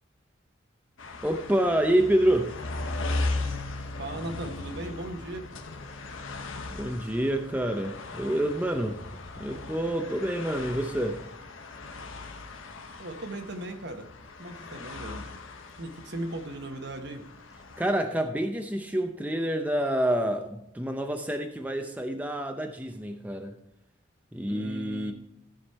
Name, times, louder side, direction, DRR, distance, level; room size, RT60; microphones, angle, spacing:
sound 1, 1.0-17.9, left 2 dB, 90° left, 1.1 m, -38 dB
voice 1, 1.2-2.5 6.8-9.0 9.3-11.2 17.8-23.5 24.3-25.1, right 1 dB, 10° right, 0.6 m, -27 dB
voice 2, 4.0-5.5 13.0-14.1 14.4-15.3 15.8-17.3 24.5-25.1, right 2 dB, 60° right, 1.1 m, -37 dB
14.5 x 5.1 x 4.2 m
head